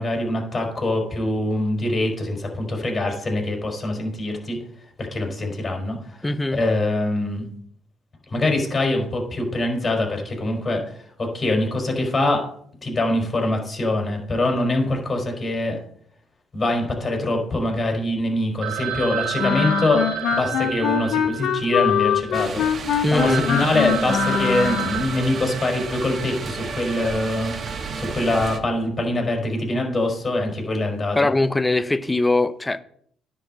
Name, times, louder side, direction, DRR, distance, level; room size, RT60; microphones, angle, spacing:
voice 1, 0.0-4.6 5.0-7.4 8.3-10.8 11.2-12.4 12.8-15.8 16.5-20.0 20.3-22.6 23.1-27.5 27.9-31.2, left 2 dB, 35° left, 4.5 m, -24 dB
voice 2, 6.2-6.6 23.0-23.4 31.2-32.8, left 2 dB, 15° left, 0.7 m, -21 dB
Telephone, 18.6-22.4 22.9-23.0 23.2-26.0, right 10 dB, 70° right, 1.6 m, -30 dB
Wind instrument woodwind instrument, 19.4-25.1, left 10 dB, 65° left, 0.7 m, -23 dB
sound 1, 22.3-28.6, right 5 dB, 50° right, 1.3 m, -32 dB
10.0 x 4.7 x 7.5 m
supercardioid pair, 70°, 0 cm